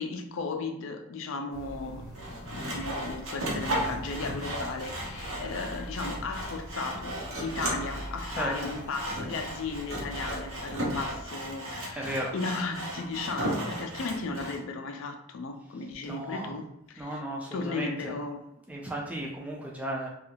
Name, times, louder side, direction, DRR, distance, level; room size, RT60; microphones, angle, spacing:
voice 1, 0.0-2.1 2.3-17.1 17.5-18.4, left 3 dB, 60° left, 0.4 m, -35 dB
sound 1, 1.5-11.3, equal, 40° left, 0.8 m, -44 dB
Sawing, 2.1-14.6, right 1 dB, 70° right, 0.8 m, -35 dB
voice 2, 8.3-8.7 11.9-12.3 16.0-16.6 17.0-18.2 18.7-20.1, right 1 dB, 5° right, 0.4 m, -35 dB
2.6 x 2.3 x 2.8 m
head